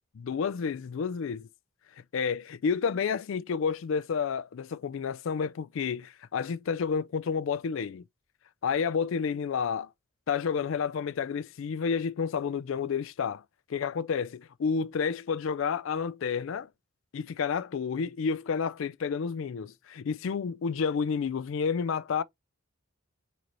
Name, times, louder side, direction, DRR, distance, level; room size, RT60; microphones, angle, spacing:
voice 1, 0.1-1.5 2.1-8.0 8.6-9.9 10.3-13.4 13.7-16.7 17.1-22.2, left 6 dB, 65° left, 0.4 m, -30 dB
4.0 x 3.0 x 2.9 m
head